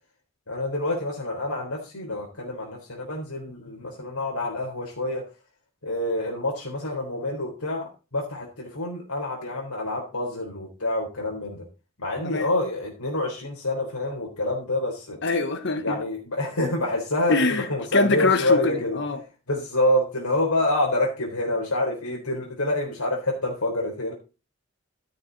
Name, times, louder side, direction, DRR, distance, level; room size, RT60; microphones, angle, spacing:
voice 1, 0.5-5.2 5.8-11.6 12.0-15.2 15.8-19.0 19.5-24.1, left 1 dB, 85° left, 3.8 m, -27 dB
voice 2, 15.2-16.0 17.3-19.2, left 3 dB, 55° left, 1.2 m, -24 dB
14.0 x 7.0 x 4.0 m
head